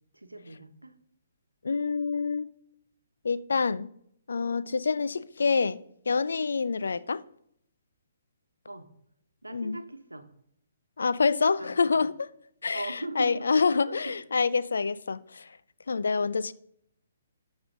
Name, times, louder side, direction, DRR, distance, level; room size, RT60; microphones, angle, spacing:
voice 1, 0.1-0.9 8.6-8.9 9.4-10.3 11.6-12.0 12.7-13.6 13.8-14.2, right 1 dB, 90° right, 1.0 m, -39 dB
voice 2, 1.6-2.5 3.2-3.9 4.3-5.8 6.1-7.2 9.5-9.8 11.0-12.3 12.6-15.5 15.9-16.5, left 4 dB, 70° left, 0.4 m, -27 dB
12.5 x 6.1 x 3.7 m
figure-of-eight pair, 130°, 0 cm